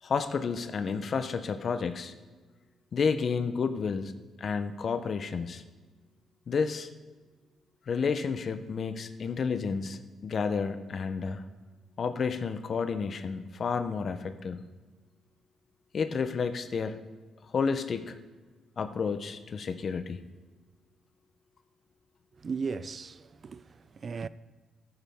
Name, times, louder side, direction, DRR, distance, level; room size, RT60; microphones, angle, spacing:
voice 1, 0.0-2.1 2.9-4.1 4.4-5.6 6.5-6.9 7.9-11.4 12.0-14.6 15.9-17.0 17.5-18.1 18.8-20.2, left 5 dB, 50° left, 0.8 m, -31 dB
voice 2, 22.4-24.3, right 5 dB, 40° right, 0.4 m, -36 dB
14.0 x 9.7 x 3.6 m
cardioid pair, 90°, 0 cm